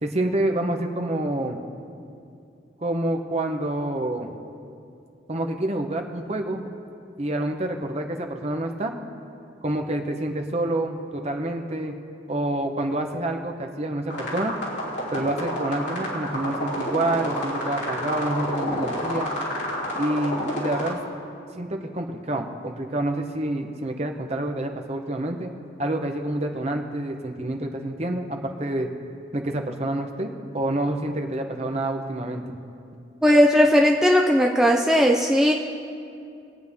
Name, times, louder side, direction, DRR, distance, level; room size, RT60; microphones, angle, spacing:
voice 1, 0.0-1.6 2.8-4.3 5.3-6.7 7.2-8.9 9.6-11.9 12.3-14.5 15.1-19.3 19.9-21.0 21.5-25.5 25.8-28.9 29.3-32.6, right 1 dB, 35° right, 3 dB, 1.0 m, -27 dB
sound 1, 14.1-20.9, equal, 70° left, 3.2 m, -29 dB
voice 2, 33.2-35.5, equal, 5° right, 0 dB, 0.5 m, -17 dB
23.5 x 8.6 x 3.6 m, 2.5 s
head